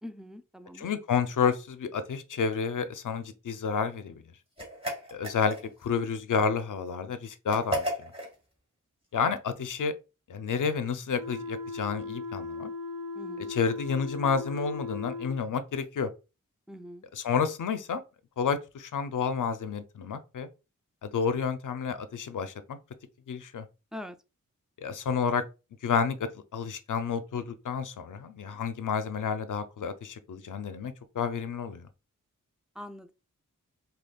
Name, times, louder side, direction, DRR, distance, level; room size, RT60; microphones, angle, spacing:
voice 1, 0.0-0.9 13.2-13.5 16.7-17.0 23.9-24.1 32.8-33.1, left 1 dB, ahead, 0.4 m, -43 dB
voice 2, 0.7-4.2 5.1-8.1 9.1-9.9 10.3-12.7 13.4-16.1 17.1-18.0 18.4-20.5 21.0-22.8 23.3-23.7 24.8-25.4 25.8-31.9, left 6 dB, 70° left, 0.6 m, -30 dB
sound 1, 4.6-5.9 7.5-8.3, equal, 15° right, 1.8 m, -33 dB
sound 2, 11.1-15.4, left 3 dB, 50° right, 1.5 m, -38 dB
5.0 x 2.3 x 2.3 m
cardioid pair, 45°, 32 cm